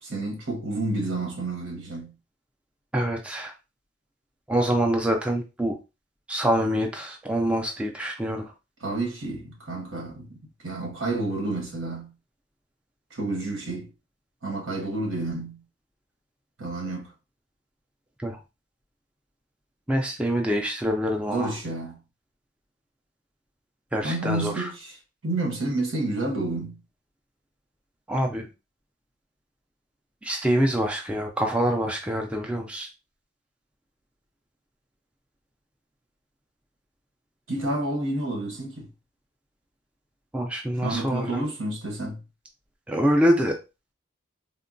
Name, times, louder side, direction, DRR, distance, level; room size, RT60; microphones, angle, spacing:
voice 1, 0.0-2.1 8.8-10.4 10.6-12.1 13.1-13.9 14.4-15.6 16.6-17.1 21.3-22.0 24.0-25.0 25.2-26.8 37.5-38.9 40.8-42.2, right 2 dB, 80° right, 1.1 m, -30 dB
voice 2, 2.9-3.5 4.5-5.8 6.3-8.5 18.2-18.4 19.9-21.5 23.9-24.7 28.1-28.5 30.2-32.9 40.3-41.4 42.9-43.6, equal, 5° right, 0.3 m, -25 dB
3.6 x 2.1 x 2.5 m
head